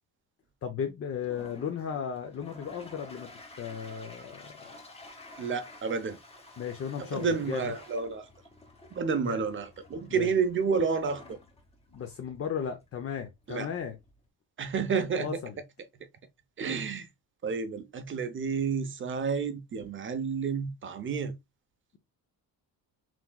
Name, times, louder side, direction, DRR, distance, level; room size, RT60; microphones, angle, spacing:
voice 1, 0.6-3.3 3.6-4.8 6.6-7.7 9.3-9.4 10.1-10.3 11.9-14.0 15.2-15.5, left 7 dB, 35° left, 0.6 m, -35 dB
Toilet flush, 1.1-14.3, left 2 dB, 15° left, 0.9 m, -52 dB
voice 2, 5.4-6.2 7.0-8.3 8.9-11.4 13.5-13.7 14.6-15.4 15.9-16.1 16.6-17.1 17.4-21.3, right 5 dB, 30° right, 0.7 m, -30 dB
5.9 x 3.0 x 2.2 m
cardioid pair, 150°, 41 cm